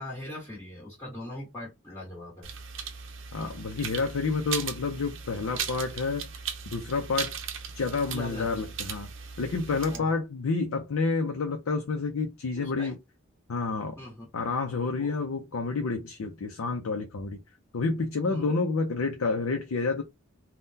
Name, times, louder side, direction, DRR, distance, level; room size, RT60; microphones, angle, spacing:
voice 1, 0.0-2.5 8.1-8.5 9.9-10.2 12.5-12.9 14.0-14.3 15.0-15.2 18.3-18.5, left 1 dB, 15° left, 1.3 m, -40 dB
sound 1, 2.4-10.0, right 7 dB, 60° right, 0.6 m, -38 dB
voice 2, 3.3-6.3 6.7-7.4 7.7-9.1 9.4-13.0 13.5-14.0 14.3-17.4 17.7-20.0, left 4 dB, 90° left, 0.5 m, -29 dB
3.6 x 2.2 x 2.7 m
head